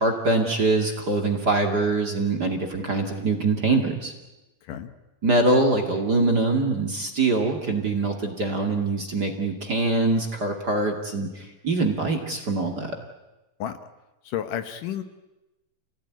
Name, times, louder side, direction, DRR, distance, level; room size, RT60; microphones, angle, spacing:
voice 1, 0.0-4.1 5.2-13.0, right 2 dB, 30° right, 2 dB, 2.3 m, -23 dB
voice 2, 14.2-15.0, left 10 dB, 70° left, 9 dB, 2.6 m, -31 dB
29.0 x 17.5 x 9.7 m, 1.0 s
omnidirectional pair, 4.1 m